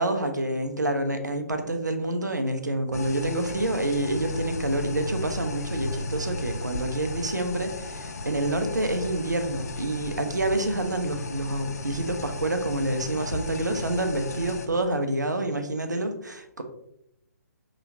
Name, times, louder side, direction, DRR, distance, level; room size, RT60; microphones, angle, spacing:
voice 1, 0.0-16.6, right 1 dB, 85° right, 6 dB, 0.7 m, -28 dB
sound 1, 2.9-14.7, left 2 dB, 60° left, 0.5 m, -35 dB
5.5 x 3.0 x 2.6 m, 0.80 s
figure-of-eight pair, 135°, 9 cm